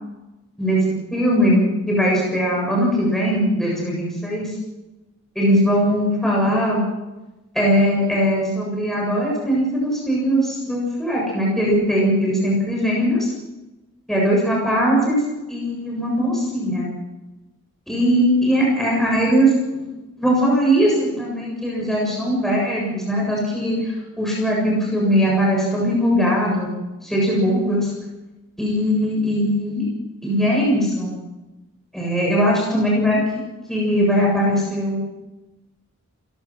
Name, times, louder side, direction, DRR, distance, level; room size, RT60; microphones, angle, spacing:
voice 1, 0.6-4.5 5.4-6.8 7.5-13.2 14.1-15.2 15.5-16.9 17.9-19.9 20.2-26.7 27.0-27.9 28.6-29.9 30.2-31.1 31.9-33.2 33.7-35.0, equal, ahead, -4 dB, 7.3 m, -20 dB
28.5 x 17.5 x 6.2 m, 1.1 s
head